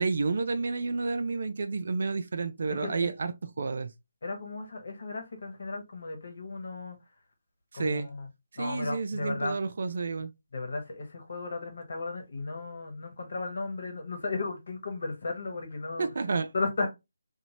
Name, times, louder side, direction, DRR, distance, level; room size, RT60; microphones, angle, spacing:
voice 1, 0.0-3.9 7.7-8.1 8.5-10.3 16.0-16.5, right 4 dB, 55° right, 0.4 m, -30 dB
voice 2, 4.2-7.0 7.7-8.3 8.6-9.6 10.5-16.1 16.5-16.9, left 3 dB, 60° left, 1.3 m, -35 dB
2.6 x 2.5 x 2.7 m
figure-of-eight pair, 155°, 0 cm